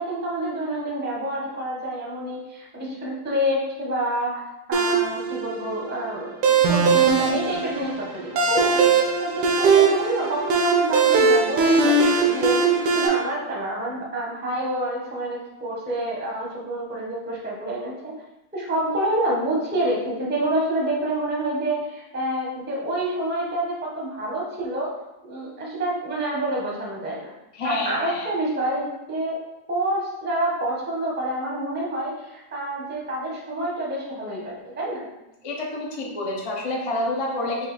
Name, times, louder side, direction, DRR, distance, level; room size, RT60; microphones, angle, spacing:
voice 1, 0.0-4.4 4.7-8.8 9.2-12.7 13.0-18.1 18.5-24.9 25.2-27.3 27.6-29.4 29.7-35.0, right 1 dB, 10° right, -3 dB, 0.5 m, -27 dB
sound 1, 4.7-13.1, right 4 dB, 80° right, 1.3 m, -20 dB
voice 2, 27.5-28.3 35.4-37.7, left 2 dB, 55° left, -2 dB, 0.3 m, -28 dB
4.7 x 2.5 x 4.0 m, 0.93 s
omnidirectional pair, 1.8 m